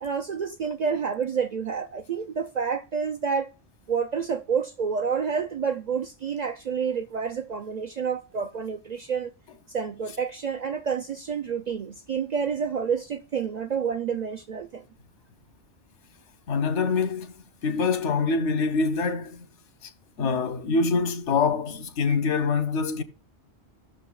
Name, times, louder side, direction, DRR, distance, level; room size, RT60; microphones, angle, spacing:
voice 1, 0.0-3.5 3.9-9.3 9.7-14.8, right 6 dB, 60° right, 0.4 m, -29 dB
voice 2, 16.5-17.3 17.6-19.4 20.2-23.0, left 4 dB, 90° left, 1.2 m, -25 dB
15.5 x 6.4 x 2.3 m
omnidirectional pair, 1.2 m